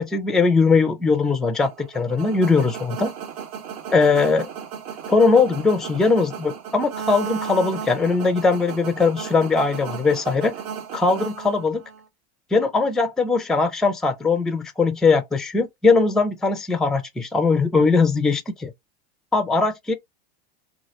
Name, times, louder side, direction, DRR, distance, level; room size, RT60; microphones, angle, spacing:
voice 1, 0.0-3.1 3.9-4.5 5.1-10.5 10.9-11.8 12.5-18.7 19.3-19.9, left 4 dB, ahead, 0.3 m, -20 dB
sound 1, 1.6-12.0, right 7 dB, 60° right, 1.0 m, -35 dB
3.0 x 2.4 x 2.9 m
supercardioid pair, 120°, 33 cm